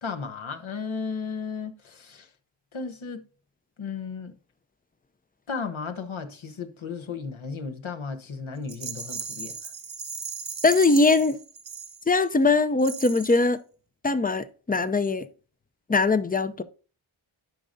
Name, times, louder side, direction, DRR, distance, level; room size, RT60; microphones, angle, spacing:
voice 1, 0.0-2.3 2.7-3.2 3.8-4.3 5.5-9.6, left 5 dB, 70° left, 1.1 m, -34 dB
Rattle, 8.7-12.3 12.8-13.5, right 5 dB, 60° right, 1.0 m, -37 dB
voice 2, 10.6-11.4 12.1-13.6 14.0-15.3 15.9-16.6, left 3 dB, 20° left, 0.5 m, -21 dB
12.0 x 5.3 x 2.6 m
wide cardioid pair, 65°, 50 cm